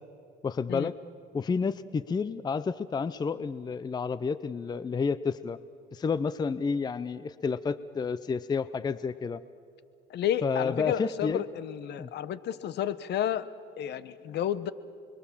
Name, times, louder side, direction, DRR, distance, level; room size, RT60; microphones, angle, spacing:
voice 1, 0.4-1.0 1.3-5.6 5.9-9.4 10.4-11.4 12.0-12.1, left 5 dB, 20° left, 16 dB, 0.5 m, -30 dB
voice 2, 10.1-13.4 13.8-14.7, left 10 dB, 60° left, 16 dB, 1.0 m, -31 dB
30.0 x 22.0 x 7.2 m, 2.3 s
cardioid pair, 105°, 20 cm